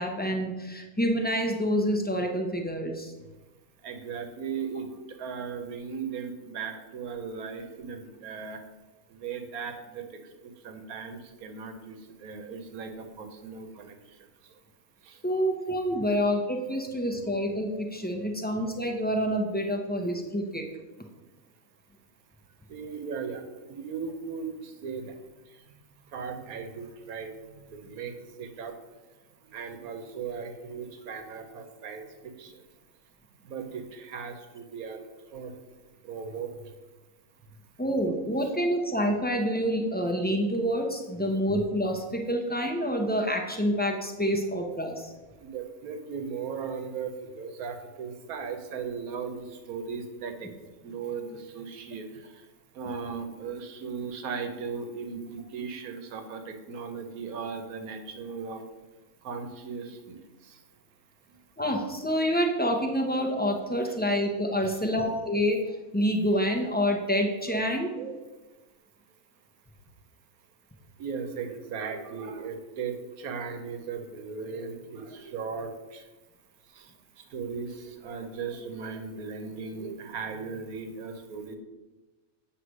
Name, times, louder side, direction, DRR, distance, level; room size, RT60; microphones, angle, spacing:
voice 1, 0.0-3.1 15.2-20.6 37.8-45.1 61.6-65.6 65.9-67.9, equal, 10° left, 2 dB, 0.4 m, -27 dB
voice 2, 3.8-8.6 9.1-14.6 15.0-15.2 22.7-25.8 26.0-28.8 29.4-32.6 33.4-35.6 36.0-36.7 45.4-50.5 50.8-52.5 52.7-58.6 59.2-60.6 61.2-61.4 63.8-63.9 64.6-65.0 68.0-68.2 71.0-76.1 76.7-81.6, right 5 dB, 85° right, 7 dB, 1.3 m, -38 dB
8.0 x 3.3 x 6.1 m, 1.2 s
omnidirectional pair, 1.5 m